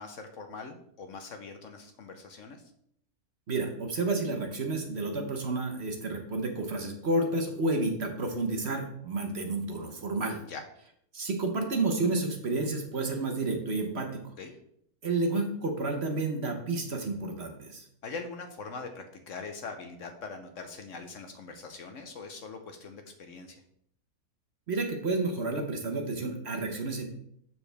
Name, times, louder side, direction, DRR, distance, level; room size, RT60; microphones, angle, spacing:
voice 1, 0.0-2.7 10.5-10.6 14.4-14.5 18.0-23.6, left 4 dB, 60° left, 6 dB, 1.1 m, -42 dB
voice 2, 3.5-10.4 11.1-14.2 15.0-17.8 24.7-27.0, right 2 dB, 50° right, 4 dB, 1.2 m, -30 dB
7.1 x 6.8 x 3.4 m, 0.69 s
omnidirectional pair, 1.6 m